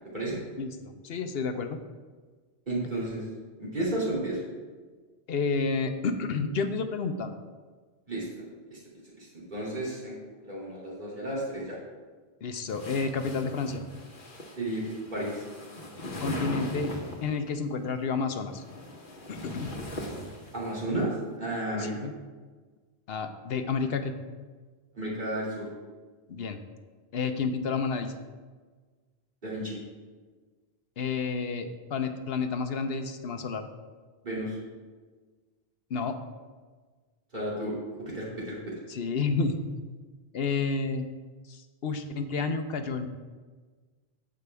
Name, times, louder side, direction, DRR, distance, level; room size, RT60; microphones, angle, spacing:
voice 1, 0.6-1.8 5.3-7.4 12.4-13.8 16.2-16.9 17.2-18.6 19.3-19.7 21.8-22.1 23.1-24.1 26.3-26.6 27.1-28.2 31.0-33.6 35.9-36.2 38.9-40.0 40.3-41.1 41.5-43.1, left 4 dB, 70° left, 8 dB, 0.9 m, -30 dB
voice 2, 2.7-3.2 3.6-4.4 8.1-8.4 8.7-8.8 9.2-10.2 10.4-11.8 14.6-14.8 15.1-15.4 20.5-21.9 24.9-25.7 29.4-29.8 34.2-34.6 37.3-38.7, right 1 dB, 50° right, -6 dB, 2.8 m, -32 dB
sound 1, 12.7-17.4 18.4-20.8, left 1 dB, 55° left, 1.3 m, -39 dB
15.0 x 5.2 x 3.4 m, 1.4 s
omnidirectional pair, 1.1 m